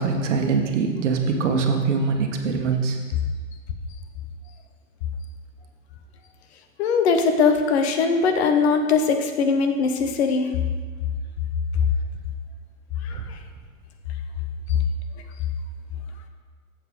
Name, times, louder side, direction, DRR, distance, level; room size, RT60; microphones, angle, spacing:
voice 1, 0.0-3.0 13.1-13.2, right 4 dB, 60° right, 4 dB, 1.3 m, -23 dB
voice 2, 6.8-10.6 13.0-13.4 14.7-14.8, left 5 dB, 50° left, 6 dB, 1.1 m, -21 dB
7.3 x 6.9 x 5.0 m, 1.5 s
hypercardioid pair, 110°, 40 cm